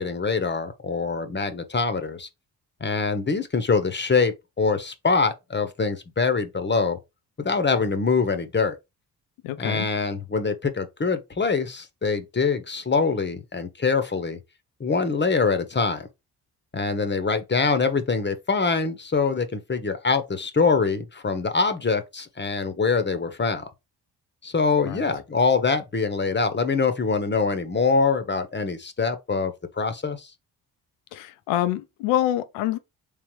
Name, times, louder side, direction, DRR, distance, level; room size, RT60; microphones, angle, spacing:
voice 1, 0.0-2.3 2.8-7.0 7.4-8.7 9.6-14.4 14.8-16.1 16.7-23.6 24.4-30.3, left 4 dB, 25° left, 0.9 m, -24 dB
voice 2, 9.4-9.9 24.8-25.0 31.1-32.8, left 12 dB, 80° left, 0.6 m, -26 dB
3.3 x 3.3 x 3.0 m
hypercardioid pair, 45°, 45 cm